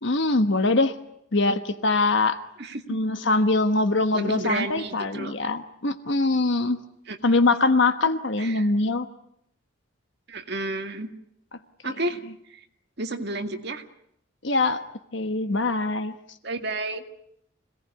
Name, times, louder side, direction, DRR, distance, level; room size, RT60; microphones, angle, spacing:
voice 1, 0.0-0.9 1.3-2.4 2.9-6.8 7.2-9.1 14.4-14.8 15.1-16.1, left 2 dB, 60° left, 9 dB, 1.3 m, -23 dB
voice 2, 4.1-5.3 7.1-7.2 8.4-8.7 10.3-11.1 11.8-12.2 12.5-12.6 13.0-13.8 16.4-17.0, right 2 dB, 55° right, 5 dB, 2.1 m, -31 dB
26.0 x 18.5 x 9.8 m, 0.74 s
head